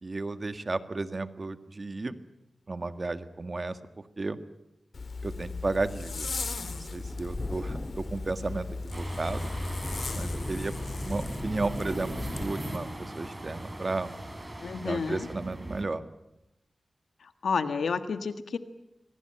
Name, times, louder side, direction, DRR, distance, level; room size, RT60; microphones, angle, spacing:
voice 1, 0.0-2.2 2.7-3.8 4.2-4.4 5.2-6.3 6.6-9.5 10.1-10.7 11.0-14.1 14.8-16.0, right 3 dB, 45° right, 10 dB, 1.8 m, -33 dB
Zipper (clothing), 4.9-12.5, left 4 dB, 70° left, 2.1 m, -38 dB
sound 1, 4.9-12.3, left 1 dB, 30° left, 2.4 m, -42 dB
sound 2, 8.9-15.8, right 1 dB, 30° right, 5.7 m, -37 dB
voice 2, 14.6-15.3 17.2-18.6, left 5 dB, 85° left, 10 dB, 1.6 m, -30 dB
25.5 x 18.5 x 8.9 m, 0.91 s
cardioid pair, 45°, 0 cm